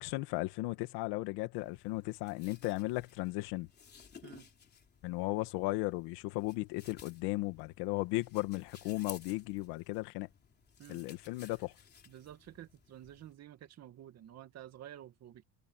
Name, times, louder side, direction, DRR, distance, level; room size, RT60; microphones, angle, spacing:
voice 1, 0.0-3.7 5.0-10.3 10.9-11.7, left 20 dB, 75° left, 2.0 m, -36 dB
sound 1, 1.5-13.3, left 6 dB, 25° left, 3.6 m, -57 dB
voice 2, 12.1-15.4, right 12 dB, 40° right, 2.2 m, -51 dB
cardioid pair, 145°, 39 cm